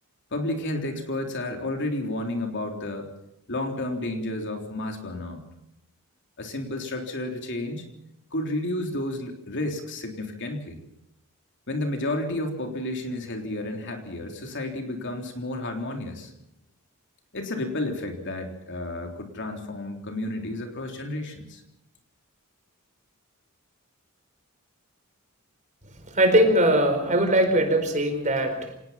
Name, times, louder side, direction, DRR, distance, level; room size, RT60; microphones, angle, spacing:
voice 1, 0.3-3.1 3.5-5.4 6.4-7.9 8.3-10.8 11.7-16.3 17.3-21.6, left 1 dB, 55° left, 4 dB, 3.7 m, -31 dB
voice 2, 26.1-28.7, right 1 dB, 35° right, 6 dB, 4.6 m, -21 dB
26.0 x 19.0 x 5.9 m, 0.81 s
head